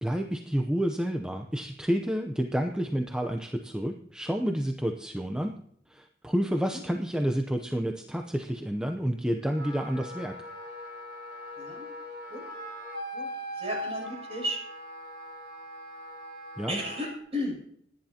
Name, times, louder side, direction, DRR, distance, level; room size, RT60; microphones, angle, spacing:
voice 1, 0.0-5.6 5.9-10.3 16.6-16.8, equal, 5° right, 4 dB, 0.7 m, -29 dB
Wind instrument woodwind instrument, 9.4-17.1, equal, 75° right, 5.2 m, -40 dB
voice 2, 11.6-11.9 12.3-12.4 13.1-13.3 13.5-14.6 16.7-17.6, equal, 35° right, -2 dB, 7.6 m, -34 dB
28.5 x 10.5 x 2.9 m, 0.68 s
head